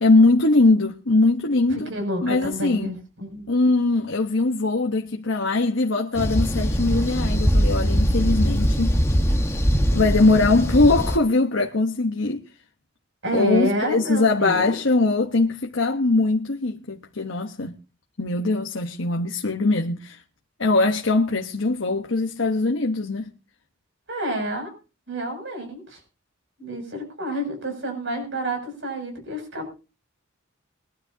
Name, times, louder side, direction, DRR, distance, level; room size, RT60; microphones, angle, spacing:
voice 1, 0.0-1.9 2.2-2.9 3.5-8.9 9.9-12.4 13.3-17.7 18.2-20.2 20.6-23.3, left 3 dB, 65° left, 1.2 m, -21 dB
voice 2, 1.7-3.5 13.2-14.8 24.1-24.7 25.1-26.0 26.6-29.7, equal, 60° right, 6.9 m, -29 dB
sound 1, 6.2-11.2, equal, 15° left, 1.2 m, -21 dB
22.5 x 12.0 x 2.8 m
head